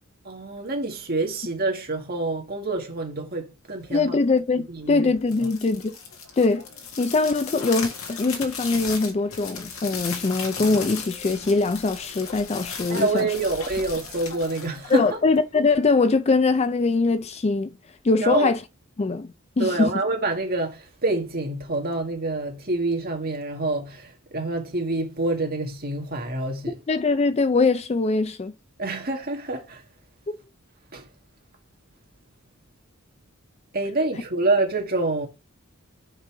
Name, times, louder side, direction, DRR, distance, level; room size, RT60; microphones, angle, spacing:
voice 1, 0.2-4.2 4.7-5.5 12.9-15.2 18.2-18.5 19.6-26.8 28.8-29.8 30.9-31.1 33.7-35.3, right 2 dB, 45° right, 1.8 m, -27 dB
voice 2, 3.9-5.9 6.4-6.6 7.0-13.3 14.9-17.7 18.0-18.6 19.0-19.9 26.9-28.5, left 3 dB, 30° left, 0.4 m, -22 dB
sound 1, 5.2-15.5, left 5 dB, 85° left, 1.7 m, -36 dB
5.4 x 5.2 x 3.8 m
head